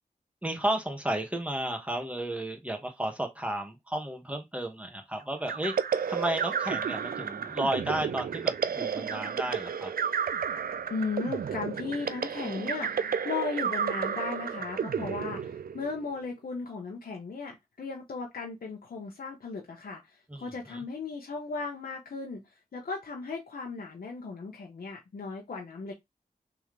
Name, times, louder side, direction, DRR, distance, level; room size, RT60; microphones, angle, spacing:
voice 1, 0.4-5.7 6.1-9.9 20.3-20.8, right 1 dB, 10° right, 1.5 m, -33 dB
sound 1, 5.5-16.1, right 7 dB, 75° right, 0.4 m, -32 dB
voice 2, 10.9-20.0 20.3-22.4 22.7-25.9, left 4 dB, 80° left, 1.1 m, -36 dB
3.7 x 3.4 x 3.3 m
cardioid pair, 55°, 15 cm